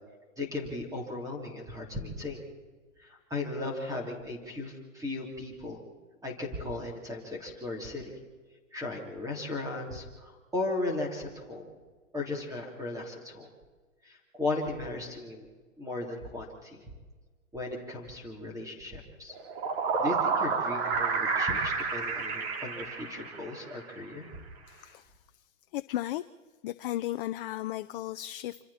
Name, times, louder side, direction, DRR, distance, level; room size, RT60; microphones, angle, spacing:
voice 1, 0.4-2.4 3.0-5.8 6.2-8.2 8.7-11.7 12.1-13.5 14.0-15.5 15.8-16.9 17.5-19.4 20.0-24.3, left 2 dB, 10° right, 0 dB, 3.4 m, -36 dB
sound 1, 19.3-23.7, right 5 dB, 50° right, 3.6 m, -30 dB
voice 2, 24.7-25.1 25.7-26.2 26.6-28.6, left 14 dB, 40° left, 10 dB, 0.6 m, -35 dB
27.0 x 26.5 x 4.3 m, 1.4 s
hypercardioid pair, 135°, 41 cm